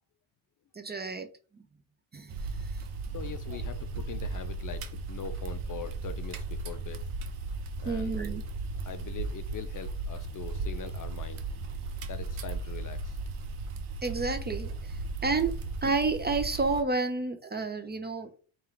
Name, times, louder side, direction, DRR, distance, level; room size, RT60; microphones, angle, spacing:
voice 1, 0.7-1.7 2.1-2.9 3.5-3.6 7.8-8.4 14.0-18.3, right 3 dB, 20° right, 0.5 m, -31 dB
sound 1, 2.3-16.8, right 3 dB, 75° right, 0.8 m, -36 dB
voice 2, 3.1-7.0 7.8-8.1 8.8-11.4 12.1-13.2, left 8 dB, 40° left, 0.4 m, -42 dB
3.6 x 2.5 x 4.4 m
cardioid pair, 75°, 50 cm